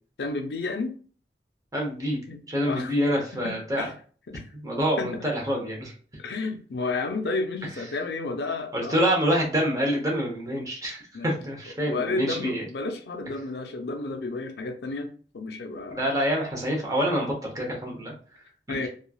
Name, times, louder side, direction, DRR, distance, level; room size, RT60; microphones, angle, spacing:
voice 1, 0.2-1.0 2.3-2.9 3.4-3.9 4.3-4.4 5.0-5.2 6.2-9.1 11.1-11.3 11.9-16.0 18.7-18.9, left 3 dB, 70° left, 6 dB, 0.5 m, -31 dB
voice 2, 1.7-2.2 2.5-3.9 4.6-5.9 8.7-12.6 15.9-18.1 18.7-18.9, equal, 20° right, -1 dB, 0.8 m, -26 dB
3.0 x 2.3 x 2.3 m, 0.41 s
head